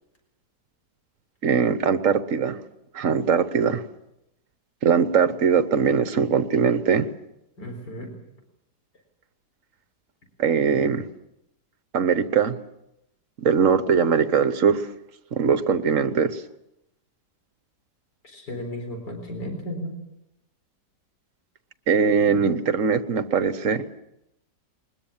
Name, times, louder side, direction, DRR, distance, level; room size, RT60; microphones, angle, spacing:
voice 1, 1.4-2.6 2.9-3.8 4.8-7.1 10.4-11.0 11.9-12.6 13.4-14.9 15.3-16.4 21.9-23.8, right 6 dB, 50° right, 12 dB, 1.4 m, -21 dB
voice 2, 7.6-8.1 18.2-19.9, equal, 75° left, 3 dB, 4.8 m, -34 dB
22.0 x 21.0 x 7.3 m, 0.84 s
omnidirectional pair, 1.8 m